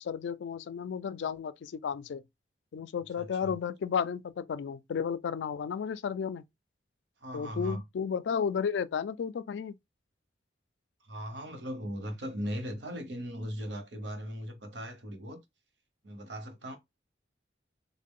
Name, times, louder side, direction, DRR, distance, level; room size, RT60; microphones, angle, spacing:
voice 1, 0.0-2.2 2.7-6.4 7.3-9.7, left 7 dB, 80° left, 0.3 m, -33 dB
voice 2, 3.2-3.6 7.2-7.8 11.0-15.4 16.0-16.8, equal, 75° right, 0.9 m, -38 dB
3.8 x 2.1 x 3.6 m
head